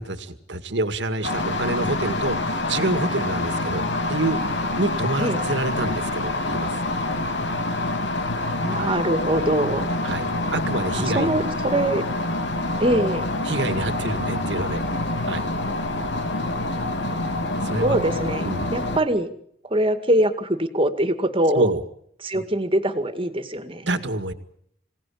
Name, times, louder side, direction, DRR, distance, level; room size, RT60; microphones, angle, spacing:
voice 1, 0.0-4.4 4.8-6.7 8.7-8.9 10.0-11.3 13.4-14.8 15.2-15.4 17.6-18.0 18.4-18.7 21.5-21.8 22.3-22.4 23.9-24.3, right 2 dB, 75° right, 10 dB, 2.0 m, -27 dB
kettle J monaural kitchen, 1.2-19.0, left 2 dB, 75° left, 2.9 m, -26 dB
voice 2, 8.6-9.9 11.1-12.0 12.8-13.3 17.8-19.3 19.6-21.7 22.2-23.9, right 1 dB, 30° right, 9 dB, 2.2 m, -23 dB
26.5 x 18.0 x 8.7 m, 0.70 s
head